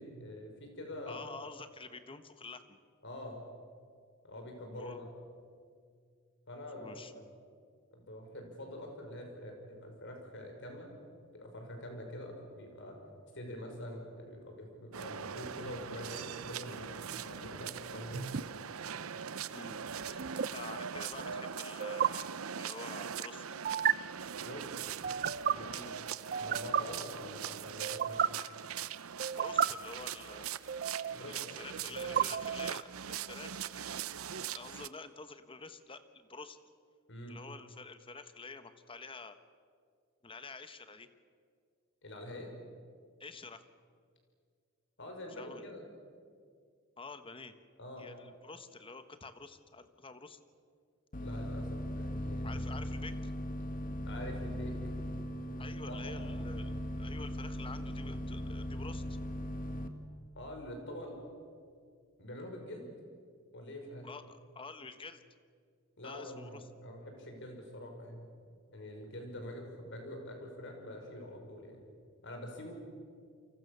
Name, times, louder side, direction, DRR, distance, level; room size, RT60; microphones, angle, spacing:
voice 1, 0.0-1.2 3.0-3.4 4.2-5.1 6.5-7.2 7.9-11.0 11.3-13.0 13.3-18.3 24.4-24.7 25.5-25.7 26.3-28.2 31.1-32.2 37.1-37.4 42.0-42.5 45.0-45.8 47.8-48.1 51.2-52.6 54.0-54.7 55.9-56.1 60.4-61.2 62.2-62.9 63.5-64.1 66.0-68.3 68.7-71.8 72.2-72.7, left 1 dB, 60° left, 2 dB, 5.9 m, -45 dB
voice 2, 1.1-2.8 4.6-5.1 6.8-7.4 19.5-19.8 20.1-20.2 20.5-23.5 25.7-26.0 29.3-30.5 31.0-34.0 34.5-36.6 37.3-39.4 40.2-41.1 43.2-43.6 45.3-45.7 47.0-47.5 48.0-50.4 52.4-53.3 55.6-59.2 64.0-65.2 66.0-66.6, left 4 dB, 25° left, 10 dB, 1.2 m, -48 dB
sound 1, 14.9-34.9, right 8 dB, 80° right, 0.7 m, -41 dB
sound 2, 18.1-18.4 20.2-20.5 21.8-22.1 23.6-23.9 25.0-25.5 26.3-26.8 27.8-28.3 29.2-29.7 30.7-31.3 32.0-32.8, right 8 dB, 45° right, 0.6 m, -32 dB
sound 3, 51.1-59.9, equal, 40° left, 1.7 m, -38 dB
29.0 x 24.5 x 6.9 m, 2.2 s
head